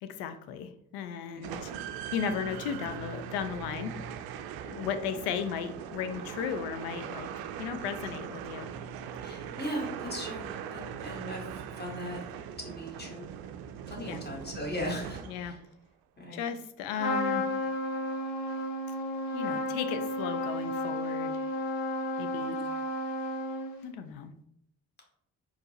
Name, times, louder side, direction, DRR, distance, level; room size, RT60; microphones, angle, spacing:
voice 1, 0.0-1.7 2.1-4.0 4.7-7.3 7.6-8.7 14.0-14.2 15.3-15.6 16.3-17.5 19.3-21.4 22.2-22.6 23.8-24.3, left 7 dB, 70° left, 10 dB, 0.5 m, -35 dB
sound 1, 1.4-15.7, right 8 dB, 60° right, 0.5 m, -40 dB
voice 2, 9.2-11.5 11.7-12.2 12.6-13.3 13.9-15.6 16.2-16.4, equal, 25° left, -1 dB, 1.4 m, -38 dB
Trumpet, 17.0-23.9, left 1 dB, 55° left, 1.0 m, -32 dB
4.2 x 2.0 x 4.1 m, 0.73 s
hypercardioid pair, 40°, 42 cm